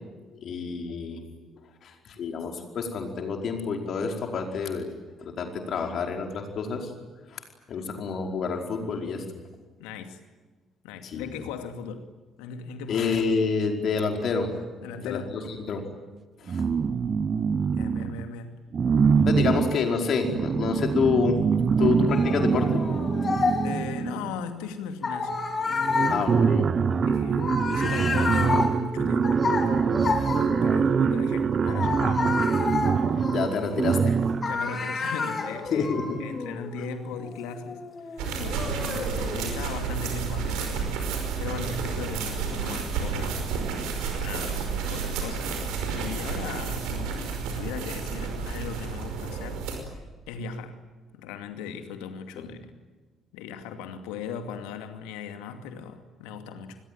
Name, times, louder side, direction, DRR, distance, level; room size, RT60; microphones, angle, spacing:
voice 1, 0.4-1.2 1.8-4.9 5.2-6.9 7.3-7.4 7.7-9.2 11.0-11.2 12.9-14.5 15.0-15.8 16.4-16.6 19.2-21.4 21.8-22.8 26.1-26.7 33.3-34.2 35.7-36.2 52.3-52.5, left 5 dB, 55° left, 3 dB, 4.8 m, -28 dB
voice 2, 9.8-10.2 10.8-12.1 12.4-13.1 14.8-15.4 17.7-18.6 23.6-26.3 27.1-29.5 30.1-32.3 34.5-35.9 36.2-43.5 44.1-45.5 45.9-50.0 50.3-50.8 51.1-52.7 53.3-56.8, left 5 dB, 70° left, 7 dB, 2.5 m, -38 dB
sound 1, 16.5-18.3 18.7-24.4 25.3-25.4 25.7-34.6, right 6 dB, 45° right, 1.1 m, -24 dB
sound 2, 22.1-23.9 25.0-30.9 31.7-34.0 34.4-39.5, left 4 dB, 40° left, 4.7 m, -30 dB
sound 3, 38.2-49.8, right 5 dB, 70° right, 5.3 m, -31 dB
29.0 x 21.5 x 9.2 m, 1.3 s
figure-of-eight pair, 45°, 0 cm